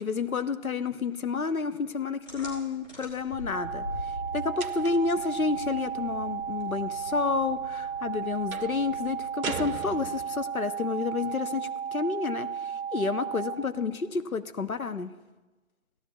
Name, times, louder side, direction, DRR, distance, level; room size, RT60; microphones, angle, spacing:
voice 1, 0.0-15.1, left 4 dB, 75° left, 10 dB, 0.8 m, -30 dB
sound 1, 2.3-9.4, left 1 dB, 60° left, 4.2 m, -43 dB
sound 2, 3.5-13.5, right 7 dB, 45° left, 2.9 m, -34 dB
sound 3, 4.6-5.2 8.5-8.8 9.4-10.5, right 5 dB, 85° right, 0.7 m, -37 dB
17.0 x 12.0 x 2.3 m, 1.2 s
figure-of-eight pair, 170°, 42 cm